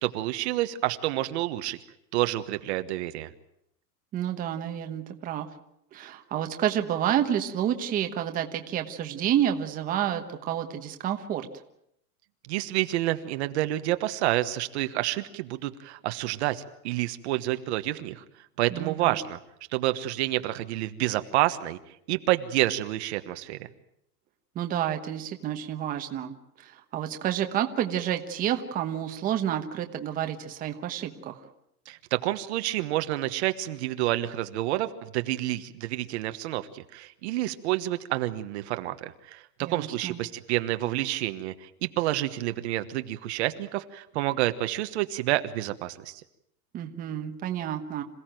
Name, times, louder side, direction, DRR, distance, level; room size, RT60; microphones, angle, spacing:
voice 1, 0.0-1.8 2.1-3.3 12.5-18.2 18.6-19.4 19.7-21.8 22.1-23.7 31.9-46.2, right 15 dB, 45° right, 9 dB, 1.3 m, -29 dB
voice 2, 4.1-5.5 5.9-11.5 18.7-19.2 24.5-31.4 39.6-40.2 46.7-48.0, right 10 dB, 20° right, 5 dB, 1.2 m, -29 dB
27.0 x 16.5 x 9.1 m, 0.77 s
supercardioid pair, 175°, 46 cm